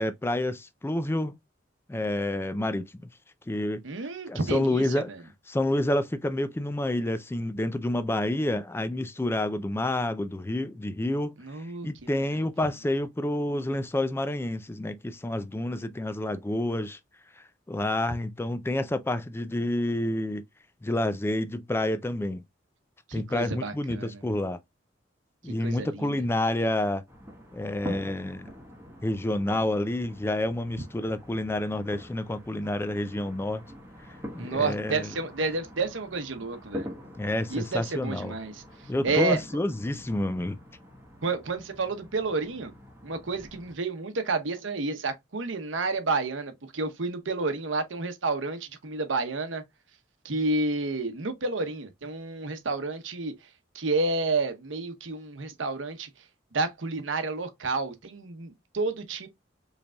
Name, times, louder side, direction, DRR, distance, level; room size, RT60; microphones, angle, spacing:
voice 1, 0.0-1.3 1.9-2.9 3.5-3.8 4.3-5.1 5.5-11.3 11.8-17.0 17.7-20.4 20.8-22.4 23.1-24.6 25.4-27.0 27.5-28.5 29.0-33.6 34.3-35.1 37.2-38.3 38.9-40.6, left 1 dB, 15° left, 0.4 m, -29 dB
voice 2, 3.8-5.2 11.4-12.3 23.1-24.3 25.6-26.1 34.4-36.9 37.5-38.6 39.0-39.4 41.2-42.7 43.0-49.6 50.2-53.3 53.7-56.1 56.5-59.3, right 3 dB, 90° right, 0.9 m, -30 dB
sound 1, 27.1-43.7, equal, 15° right, 1.1 m, -44 dB
5.0 x 3.3 x 2.3 m
head